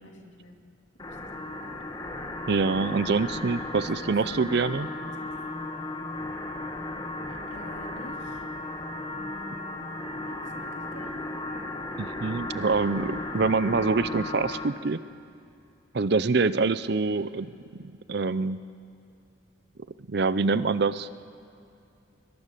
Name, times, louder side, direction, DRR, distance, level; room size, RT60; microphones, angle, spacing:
voice 1, 0.0-0.6 0.9-1.8 2.8-3.3 3.7-4.7 5.0-5.4 7.3-8.5 9.1-11.4, equal, 70° left, 2 dB, 2.5 m, -48 dB
sound 1, 1.0-14.7, left 2 dB, 20° left, 1.3 m, -35 dB
voice 2, 2.5-4.9 12.0-15.0 15.9-18.6 20.1-21.1, right 4 dB, 55° right, 15 dB, 0.5 m, -25 dB
22.0 x 21.5 x 6.8 m, 2.6 s
head